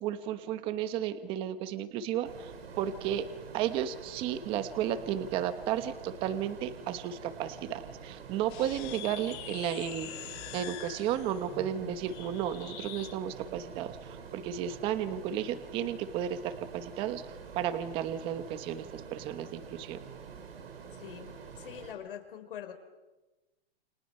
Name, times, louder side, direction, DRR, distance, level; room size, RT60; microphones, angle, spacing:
voice 1, 0.0-2.5 2.8-3.3 3.5-10.1 10.5-20.0, right 10 dB, 15° right, 11 dB, 1.1 m, -33 dB
Ocean, 2.2-21.9, right 6 dB, 80° right, 6.9 m, -47 dB
sound 1, 8.5-13.2, left 12 dB, 25° left, 1.4 m, -45 dB
voice 2, 20.9-22.7, left 9 dB, 60° left, 5 dB, 4.9 m, -44 dB
29.5 x 29.0 x 5.6 m, 1.1 s
hypercardioid pair, 175°, 30 cm